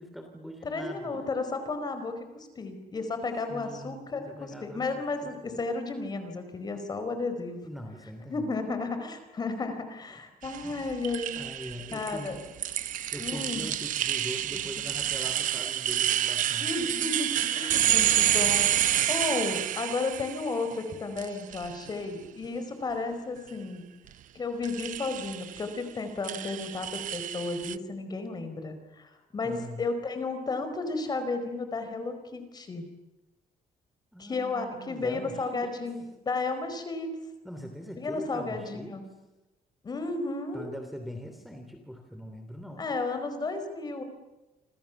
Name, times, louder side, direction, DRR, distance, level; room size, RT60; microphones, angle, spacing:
voice 1, 0.0-1.3 3.5-5.6 7.6-8.4 10.6-10.9 11.4-12.4 13.1-16.7 29.4-29.8 34.1-35.8 37.4-39.0 40.5-42.9, equal, ahead, 4 dB, 3.1 m, -42 dB
voice 2, 0.6-7.6 8.3-11.4 11.9-12.4 13.2-13.7 16.6-23.8 24.3-32.8 34.2-37.1 38.0-39.1 39.8-40.7 42.8-44.0, left 3 dB, 25° left, 8 dB, 4.7 m, -33 dB
sound 1, 10.4-20.7 21.2-21.9 24.6-25.7 26.2-27.7, right 11 dB, 65° right, 0.9 m, -29 dB
30.0 x 27.0 x 7.2 m, 1.0 s
cardioid pair, 175°, 15 cm